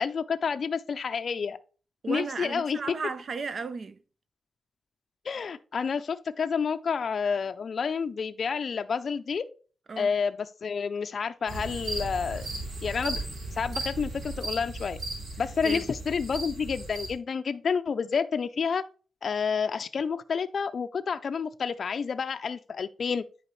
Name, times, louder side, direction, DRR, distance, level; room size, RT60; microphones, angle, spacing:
voice 1, 0.0-1.6 2.1-2.9 5.2-9.4 10.0-12.5 12.8-13.2 13.5-15.0 15.4-18.8 19.2-23.2, left 6 dB, 55° left, 0.4 m, -29 dB
voice 2, 2.0-4.0 9.9-10.1 15.6-15.9, right 4 dB, 55° right, 0.6 m, -34 dB
sound 1, 11.5-17.1, right 2 dB, 90° right, 3.3 m, -36 dB
9.7 x 4.9 x 3.1 m
wide cardioid pair, 115°, 0 cm